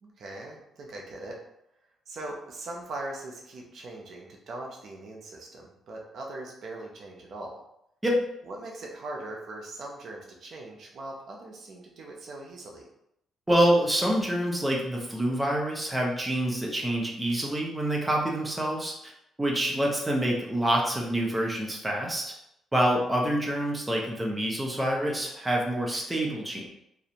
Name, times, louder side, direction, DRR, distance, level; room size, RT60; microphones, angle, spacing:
voice 1, 0.0-1.4 2.1-7.6 8.5-12.9, right 2 dB, 60° right, -1 dB, 0.5 m, -40 dB
voice 2, 13.5-19.1 19.4-22.3 22.7-26.7, right 1 dB, 10° right, -1 dB, 0.5 m, -26 dB
2.5 x 2.0 x 2.8 m, 0.79 s
cardioid pair, 90°, 0 cm